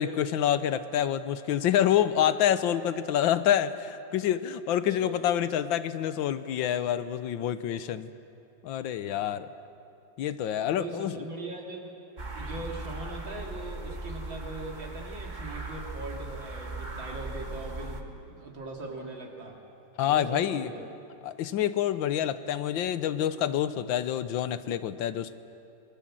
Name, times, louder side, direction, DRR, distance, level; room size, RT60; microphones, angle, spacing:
voice 1, 0.0-8.1 8.6-9.5 10.2-11.2 20.0-20.7 21.2-25.3, left 10 dB, 85° left, 13 dB, 1.6 m, -27 dB
voice 2, 4.8-5.2 9.1-9.3 10.7-12.0 12.3-19.6 20.0-20.8, right 2 dB, 80° right, 0 dB, 3.6 m, -40 dB
sound 1, 12.2-18.0, right 2 dB, 25° right, 1.5 m, -38 dB
26.5 x 20.5 x 7.6 m, 2.7 s
omnidirectional pair, 2.0 m